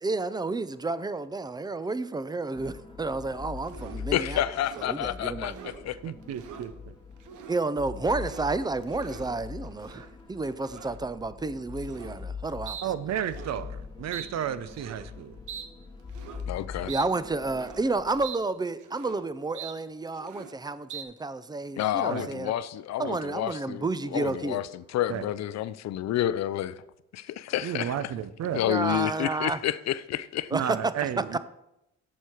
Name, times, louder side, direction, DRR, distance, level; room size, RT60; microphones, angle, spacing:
voice 1, 0.0-4.4 4.8-5.6 7.5-12.8 16.8-22.5 23.0-24.6 28.6-29.6 30.5-30.9 31.3-31.4, right 3 dB, 15° right, 0.4 m, -31 dB
sound 1, 2.5-18.2, left 5 dB, 15° left, 1.2 m, -43 dB
sound 2, 3.6-4.1 4.5-4.9 5.4-5.8 6.2-6.7 7.2-7.6 8.0-8.5 8.8-9.3 9.8-10.1 10.6-11.0 11.8-12.2 12.7-12.9 13.2-13.6 14.1-14.3 14.7-15.1 15.5-15.7 16.1-16.4 16.9-17.1 17.4-17.9 18.2-18.4 18.7-19.2 19.5-19.8 20.1-20.6 20.9-21.0, right 8 dB, 85° right, 0.9 m, -42 dB
voice 2, 4.1-6.1 16.5-16.9 21.8-26.8 27.1-28.1 28.5-30.5, left 12 dB, 60° left, 0.5 m, -30 dB
voice 3, 6.0-6.9 12.8-15.4 16.8-17.0 22.1-22.3 23.0-23.1 25.1-25.3 27.6-28.6 30.5-31.4, right 9 dB, 60° right, 0.6 m, -33 dB
8.1 x 6.5 x 4.4 m
cardioid pair, 90°, 30 cm